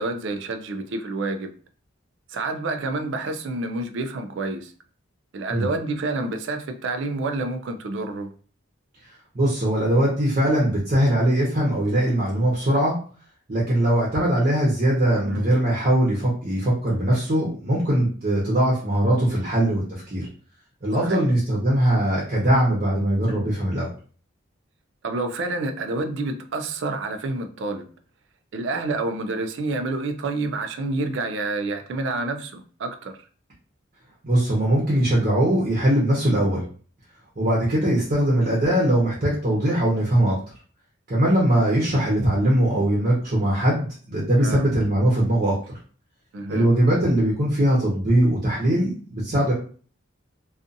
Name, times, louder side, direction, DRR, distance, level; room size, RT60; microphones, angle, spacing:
voice 1, 0.0-1.5 2.3-4.7 5.3-8.3 15.2-15.5 21.0-21.3 25.0-27.9 28.5-33.2 44.4-44.7 46.3-46.7, right 2 dB, 60° right, 6 dB, 0.3 m, -28 dB
voice 2, 9.3-13.0 13.5-20.3 20.8-23.9 34.2-36.6 37.4-40.4 41.1-45.6 46.5-49.5, right 1 dB, 40° right, -5 dB, 0.8 m, -21 dB
2.5 x 2.4 x 2.5 m, 0.42 s
head